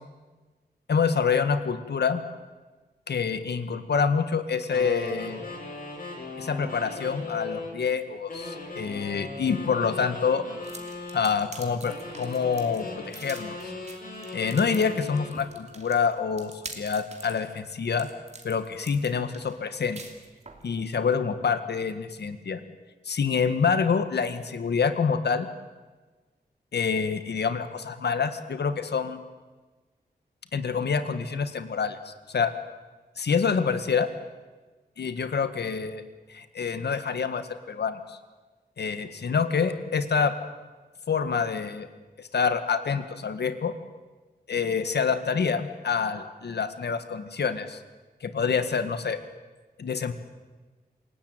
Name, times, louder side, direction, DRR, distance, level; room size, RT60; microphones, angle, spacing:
voice 1, 0.9-2.2 3.1-5.4 6.4-10.4 11.1-13.6 14.3-18.1 18.4-20.0 20.6-22.6 23.1-25.5 26.7-29.2 30.5-32.5 33.2-34.1 35.0-36.0 36.3-38.2 38.8-40.3 41.1-41.9 42.2-43.7 44.5-47.8 48.2-49.2 49.8-50.1, left 6 dB, 90° left, 10 dB, 1.8 m, -27 dB
sound 1, 4.7-7.8 8.3-11.2 11.9-15.4, left 3 dB, 60° left, 7.6 m, -38 dB
sound 2, 10.6-20.7, right 3 dB, 40° right, 2.8 m, -45 dB
27.5 x 17.5 x 9.2 m, 1.3 s
wide cardioid pair, 145°, 17 cm